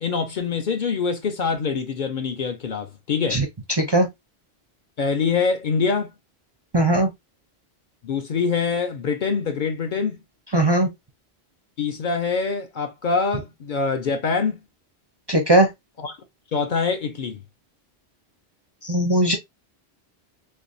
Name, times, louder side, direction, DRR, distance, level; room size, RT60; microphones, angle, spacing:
voice 1, 0.0-3.4 5.0-6.1 8.0-10.2 11.8-14.6 16.0-16.2 16.5-17.4, left 5 dB, 55° left, 0.6 m, -24 dB
voice 2, 3.8-4.1 6.7-7.1 10.5-10.9 15.3-15.7 18.8-19.4, right 1 dB, 35° right, 0.4 m, -18 dB
3.4 x 2.9 x 2.5 m
omnidirectional pair, 1.1 m